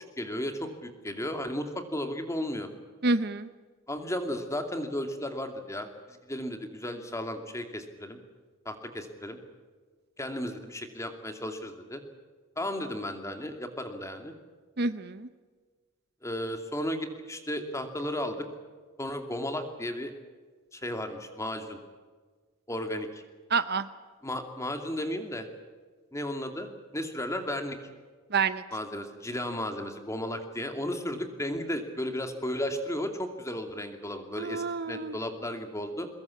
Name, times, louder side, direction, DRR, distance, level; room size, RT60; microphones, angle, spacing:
voice 1, 0.2-2.7 3.9-8.2 8.6-9.4 10.2-12.0 12.6-14.3 16.2-18.5 19.0-20.1 20.7-21.8 22.7-23.2 24.2-25.5 26.1-27.8 28.7-36.1, left 1 dB, 15° left, 6 dB, 2.6 m, -34 dB
voice 2, 3.0-3.5 14.8-15.3 23.5-23.9 28.3-28.6 34.4-35.2, right 4 dB, 50° right, 13 dB, 0.8 m, -28 dB
23.0 x 21.0 x 8.5 m, 1.5 s
head